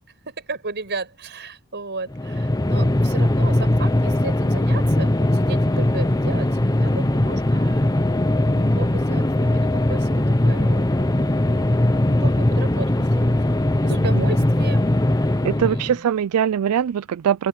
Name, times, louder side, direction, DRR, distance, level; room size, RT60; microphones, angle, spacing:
voice 1, 0.3-7.9 8.5-10.9 11.3-13.4 13.8-16.1, right 3 dB, 50° right, 5.4 m, -35 dB
sound 1, 2.1-16.0, left 1 dB, 15° left, 0.8 m, -20 dB
voice 2, 15.4-17.5, right 9 dB, 90° right, 0.4 m, -22 dB
open air
head